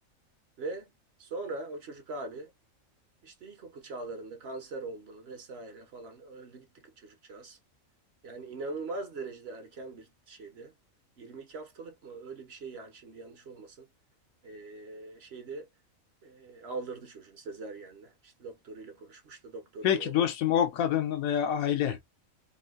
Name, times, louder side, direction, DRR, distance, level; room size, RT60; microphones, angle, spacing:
voice 1, 0.6-0.9 1.2-2.5 3.2-7.6 8.2-10.7 11.2-13.8 14.4-15.7 16.2-20.3 21.7-22.0, right 3 dB, 55° right, 0.9 m, -42 dB
voice 2, 19.8-22.0, left 10 dB, 80° left, 1.1 m, -26 dB
3.5 x 2.5 x 2.3 m
omnidirectional pair, 1.4 m